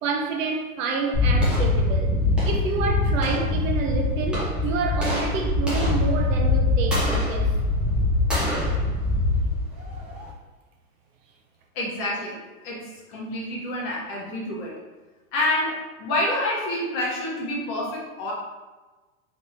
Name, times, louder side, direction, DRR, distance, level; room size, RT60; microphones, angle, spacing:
voice 1, 0.0-2.2 2.4-7.5, right 4 dB, 65° right, 3 dB, 0.8 m, -28 dB
sound 1, 1.1-10.3, left 2 dB, ahead, 0.5 m, -23 dB
voice 2, 11.7-12.4 12.6-14.8 15.3-18.3, left 1 dB, 30° left, -3 dB, 0.9 m, -28 dB
3.4 x 3.2 x 4.2 m, 1.2 s
supercardioid pair, 160°, 43 cm